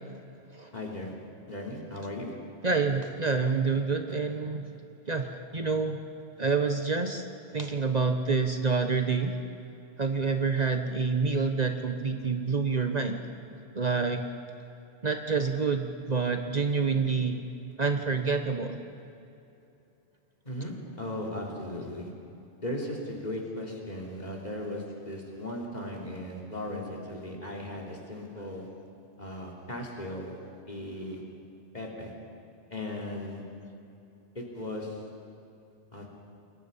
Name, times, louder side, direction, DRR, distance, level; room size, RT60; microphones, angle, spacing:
voice 1, 0.7-1.1 1.5-2.3 20.5-22.1 22.6-28.7 29.2-30.4 30.7-31.2 31.7-32.1 32.7-33.4 34.4-35.0 35.9-36.0, left 1 dB, 40° left, -1 dB, 3.6 m, -37 dB
voice 2, 2.6-4.7 5.1-6.0 6.4-7.2 7.5-9.4 10.0-13.2 13.7-14.2 15.0-17.4 17.8-18.8, right 4 dB, 40° right, 5 dB, 1.2 m, -27 dB
28.0 x 21.5 x 5.6 m, 2.8 s
omnidirectional pair, 1.1 m